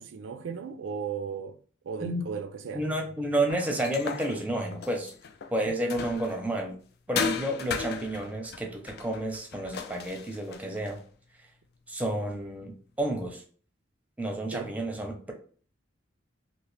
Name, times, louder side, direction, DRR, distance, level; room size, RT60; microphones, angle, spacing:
voice 1, 0.0-1.6 1.8-2.9 5.7-5.8 14.5-14.7, right 6 dB, 80° right, 0.4 m, -36 dB
voice 2, 2.7-5.1 5.5-6.8 7.1-11.0 11.9-13.4 14.2-15.3, right 1 dB, 10° right, 0.6 m, -30 dB
sound 1, 3.5-6.5 7.2-11.0, left 6 dB, 55° left, 0.4 m, -36 dB
2.9 x 2.8 x 3.2 m
head